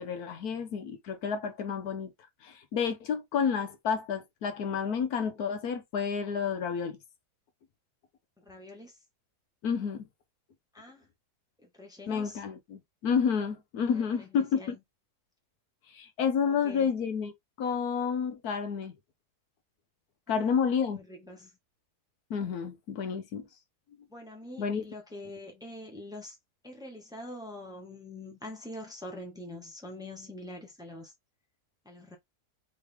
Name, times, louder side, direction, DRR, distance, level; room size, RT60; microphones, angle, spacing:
voice 1, 0.0-2.1 2.4-7.0 9.6-10.0 12.1-14.8 15.9-17.3 17.6-19.0 20.3-21.0 22.3-23.4 24.6-24.8, left 6 dB, 70° left, 1.3 m, -30 dB
voice 2, 8.4-9.0 10.7-11.1 11.6-12.4 14.2-14.8 16.4-16.9 20.3-20.5 20.9-21.5 24.1-26.4 26.6-31.1 31.8-32.2, left 1 dB, 5° right, 1.2 m, -44 dB
4.1 x 3.2 x 3.4 m
omnidirectional pair, 1.7 m